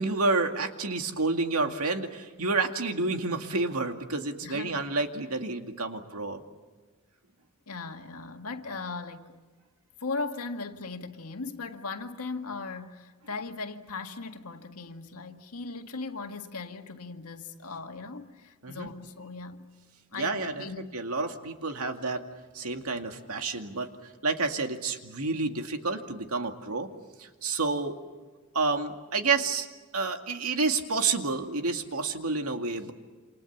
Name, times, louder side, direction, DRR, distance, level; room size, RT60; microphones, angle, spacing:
voice 1, 0.0-6.4 18.6-18.9 20.2-20.6 20.9-22.3 22.5-23.9 24.2-26.9 27.2-28.0 28.5-29.7 29.9-32.9, right 3 dB, 75° right, 2.2 m, -29 dB
voice 2, 4.4-4.9 7.7-9.4 10.0-19.7 20.1-20.9, left 3 dB, 85° left, 1.9 m, -38 dB
28.5 x 27.5 x 7.3 m
head